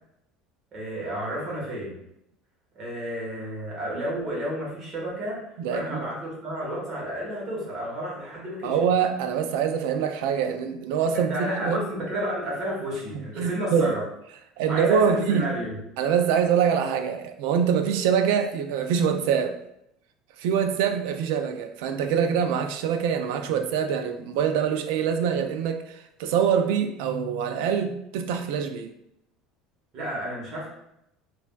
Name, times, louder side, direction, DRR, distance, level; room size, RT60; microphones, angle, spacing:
voice 1, 0.7-2.0 2.7-8.8 11.1-14.0 14.7-15.8 29.9-30.7, equal, 40° right, -4 dB, 1.1 m, -31 dB
voice 2, 5.6-6.0 8.6-11.8 13.4-13.9 14.6-15.5 16.0-19.6 20.4-28.9, right 7 dB, 75° right, 7 dB, 0.3 m, -24 dB
3.2 x 2.3 x 2.2 m, 0.79 s
cardioid pair, 145°, 0 cm